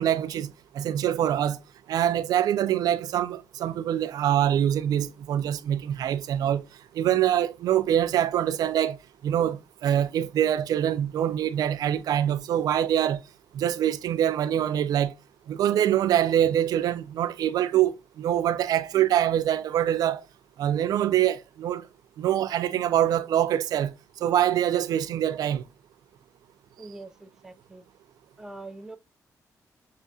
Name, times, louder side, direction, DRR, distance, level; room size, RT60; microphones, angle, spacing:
voice 1, 0.0-1.6 1.9-6.6 6.9-9.0 9.2-13.2 13.5-15.1 15.5-20.2 20.6-21.9 22.2-23.9 24.2-25.6, right 11 dB, 75° right, 0.3 m, -24 dB
voice 2, 26.8-27.8 28.4-29.0, right 2 dB, 10° right, 0.4 m, -43 dB
6.5 x 2.4 x 2.3 m
cardioid pair, 105°, 7 cm